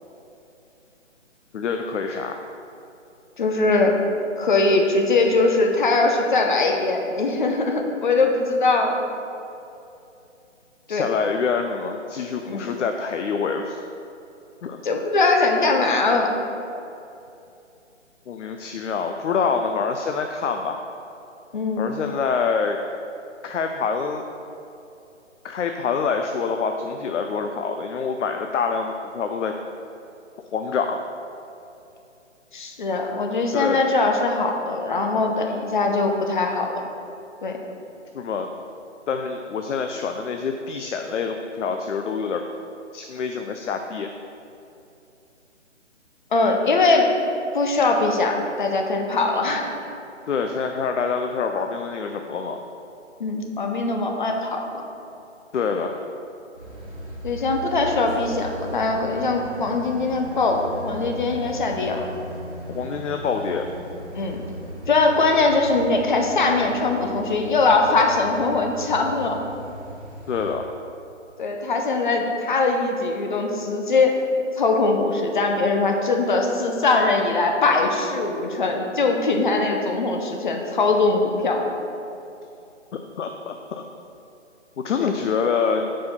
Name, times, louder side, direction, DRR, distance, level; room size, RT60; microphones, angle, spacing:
voice 1, 1.5-2.4 10.9-13.8 14.6-14.8 18.3-20.8 21.8-22.8 23.4-24.2 25.4-29.5 30.5-31.0 33.5-33.8 38.1-38.5 39.1-42.4 42.9-44.1 50.3-52.6 55.5-56.0 62.7-63.7 70.3-70.7 82.9-83.8 84.8-85.9, left 5 dB, 75° left, 5 dB, 0.5 m, -26 dB
voice 2, 3.4-4.0 4.4-9.0 10.9-11.1 12.4-12.7 14.8-16.3 21.5-21.9 32.5-36.8 37.4-37.6 46.3-47.1 47.5-49.7 53.2-54.8 57.2-62.1 64.1-64.4 64.9-69.4 71.4-74.2 74.5-81.7 85.0-85.1, left 3 dB, 40° left, 2 dB, 0.7 m, -21 dB
sound 1, 56.5-70.5, equal, 5° right, 1.4 m, -38 dB
4.9 x 4.8 x 5.3 m, 2.7 s
figure-of-eight pair, 155°, 37 cm